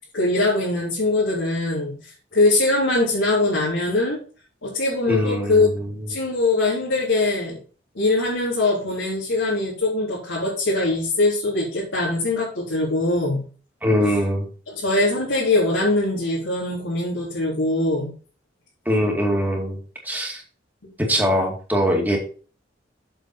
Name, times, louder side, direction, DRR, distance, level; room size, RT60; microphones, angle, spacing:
voice 1, 0.1-4.2 4.6-5.7 6.1-7.6 7.9-13.4 14.7-18.1, left 2 dB, 75° left, -7 dB, 3.6 m, -22 dB
voice 2, 5.1-5.9 13.8-14.5 18.9-19.8 20.0-20.4 21.0-22.2, equal, 10° right, 0 dB, 2.2 m, -22 dB
7.8 x 7.1 x 4.4 m, 0.39 s
head